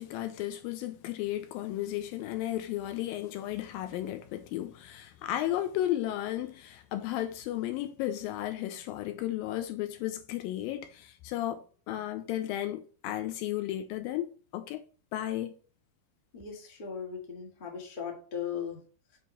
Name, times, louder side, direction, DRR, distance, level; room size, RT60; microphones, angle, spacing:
voice 1, 0.0-14.8 15.1-15.6, left 13 dB, 80° left, 2.3 m, -34 dB
voice 2, 16.3-18.8, left 7 dB, 35° left, 0.7 m, -38 dB
7.0 x 3.0 x 5.7 m
omnidirectional pair, 4.3 m